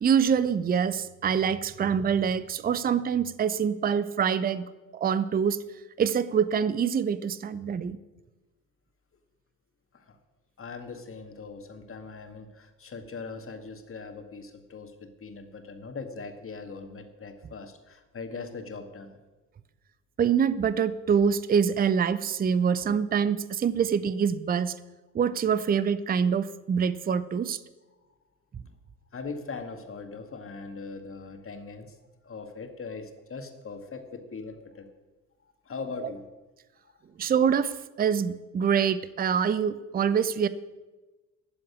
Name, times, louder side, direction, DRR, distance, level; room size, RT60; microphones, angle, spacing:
voice 1, 0.0-5.6 6.0-8.0 20.2-24.7 25.1-27.6 37.2-37.7 38.0-40.5, right 7 dB, 20° right, 16 dB, 0.7 m, -25 dB
voice 2, 10.6-19.2 29.1-32.0 32.2-34.9 35.4-36.3 36.8-37.0, left 4 dB, 30° left, 6 dB, 2.1 m, -40 dB
12.0 x 7.5 x 9.9 m, 1.2 s
figure-of-eight pair, 55°, 45 cm